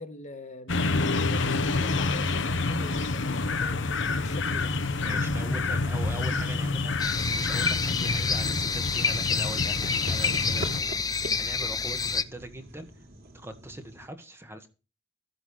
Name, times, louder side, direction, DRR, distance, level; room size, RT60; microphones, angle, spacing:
voice 1, 0.0-3.8 4.1-4.7 5.2-5.3 5.5-5.9 6.1-6.5, left 2 dB, 40° left, 1.6 m, -43 dB
sound 1, 0.7-10.8, left 3 dB, 65° left, 1.3 m, -28 dB
sound 2, 4.4-14.1, right 1 dB, 50° right, 3.1 m, -46 dB
voice 2, 5.0-12.9 13.3-14.7, right 1 dB, 15° right, 1.6 m, -41 dB
sound 3, 7.0-12.2, left 5 dB, 20° left, 0.7 m, -28 dB
14.5 x 8.1 x 6.5 m
head